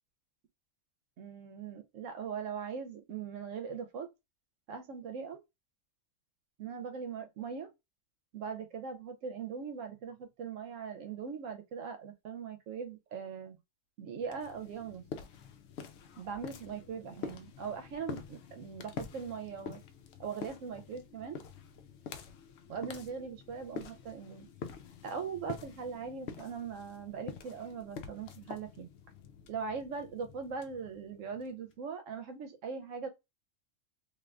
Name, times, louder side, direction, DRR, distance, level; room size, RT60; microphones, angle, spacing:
voice 1, 1.2-4.1 4.7-5.4 6.6-7.7 8.3-13.6 14.0-15.1 16.2-19.8 20.2-21.4 22.7-24.5 25.0-28.9 29.5-33.1, right 6 dB, 80° right, 1.0 m, -40 dB
sound 1, 14.2-31.7, left 6 dB, 65° left, 0.7 m, -47 dB
3.4 x 2.6 x 2.4 m
omnidirectional pair, 1.3 m